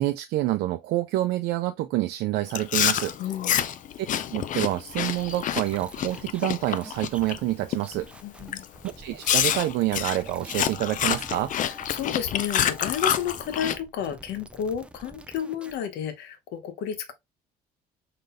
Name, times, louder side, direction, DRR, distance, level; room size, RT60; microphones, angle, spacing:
voice 1, 0.0-3.1 4.3-8.1 8.8-11.5, right 15 dB, 80° right, 0.4 m, -27 dB
Chewing mastication, 2.5-7.4 7.7-8.0 8.5-8.7 9.2-13.8, left 10 dB, 50° left, 0.4 m, -27 dB
voice 2, 3.2-3.7 8.2-8.6 11.5-17.1, left 8 dB, 80° left, 0.9 m, -32 dB
sound 1, 4.9-9.7 10.0-15.9, right 2 dB, 5° right, 0.4 m, -48 dB
3.8 x 3.8 x 2.5 m
cardioid pair, 110°, 17 cm